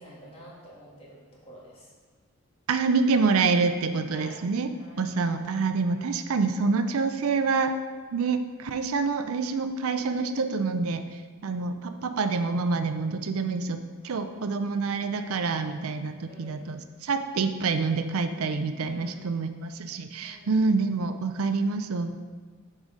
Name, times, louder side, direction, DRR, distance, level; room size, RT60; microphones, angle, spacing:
voice 1, 0.0-1.9 4.1-4.4 4.8-5.1 5.9-6.1 16.3-16.8 18.8-19.4 20.2-20.6, equal, 25° left, -5 dB, 1.7 m, -49 dB
voice 2, 2.7-4.7 5.0-7.8 8.1-11.1 11.4-13.8 14.0-22.2, right 4 dB, 75° right, 9 dB, 0.5 m, -27 dB
6.4 x 4.9 x 5.0 m, 1.5 s
head